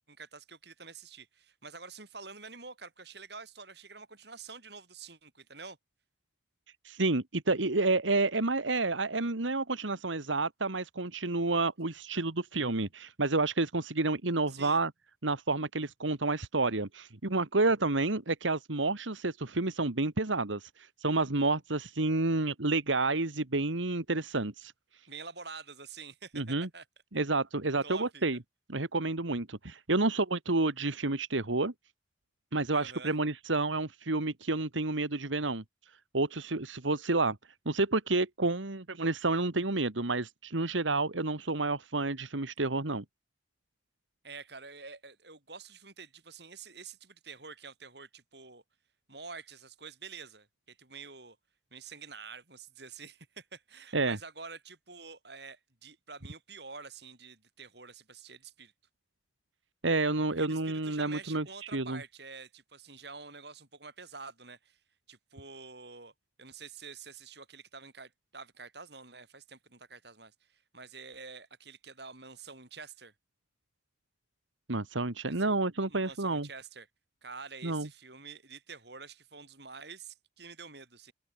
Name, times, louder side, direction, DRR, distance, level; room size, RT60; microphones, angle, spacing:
voice 1, 0.1-5.8 14.5-14.8 25.1-26.8 27.8-28.2 32.7-33.1 44.2-48.6 49.1-51.4 51.7-58.7 60.4-64.8 65.1-66.1 66.4-73.1 75.3-75.6 75.9-76.9 77.2-81.1, right 4 dB, 60° right, 7.9 m, -48 dB
voice 2, 6.8-14.9 15.2-24.7 26.3-26.7 27.1-28.4 28.7-31.7 32.5-35.6 36.1-37.4 37.7-43.0 53.9-54.2 59.8-62.0 74.7-76.5 77.6-77.9, right 2 dB, 90° right, 1.9 m, -30 dB
open air
head